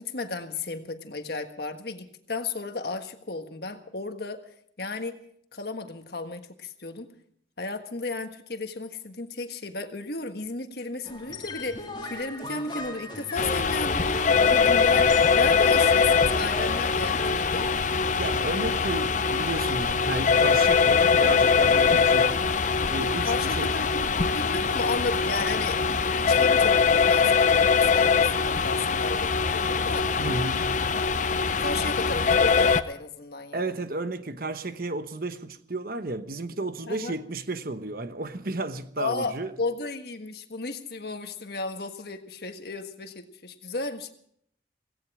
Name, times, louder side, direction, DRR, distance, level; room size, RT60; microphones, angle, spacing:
voice 1, 0.0-4.4 4.8-5.2 5.5-7.1 7.6-17.7 23.2-25.8 26.2-30.1 31.6-33.7 36.9-37.1 39.0-44.1, left 3 dB, 55° left, 1.5 m, -34 dB
sound 1, 11.0-17.8, left 2 dB, 25° left, 2.2 m, -38 dB
sound 2, 13.4-32.8, left 5 dB, 40° left, 0.7 m, -22 dB
voice 2, 18.1-22.3 22.9-23.7 30.2-30.7 33.5-39.5, right 2 dB, 50° right, 1.0 m, -33 dB
17.5 x 17.0 x 4.9 m
head